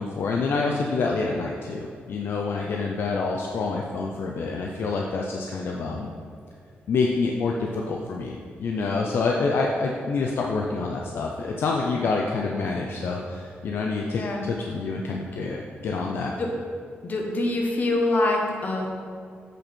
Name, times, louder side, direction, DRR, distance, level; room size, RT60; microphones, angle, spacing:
voice 1, 0.0-6.1 6.9-16.3, left 4 dB, 65° left, 0 dB, 0.5 m, -27 dB
voice 2, 17.0-18.9, left 2 dB, 45° left, 1 dB, 1.0 m, -25 dB
7.9 x 4.4 x 4.3 m, 2.2 s
wide cardioid pair, 135°, 4 cm